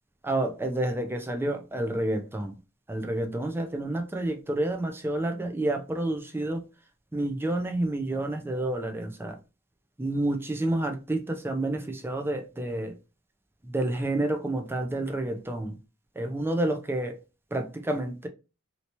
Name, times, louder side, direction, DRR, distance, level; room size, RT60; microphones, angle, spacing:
voice 1, 0.2-2.6 2.9-6.6 7.1-9.4 10.0-12.9 13.6-15.8 16.2-17.2 17.5-18.3, right 1 dB, 10° right, 0.5 m, -29 dB
3.2 x 2.8 x 2.8 m
head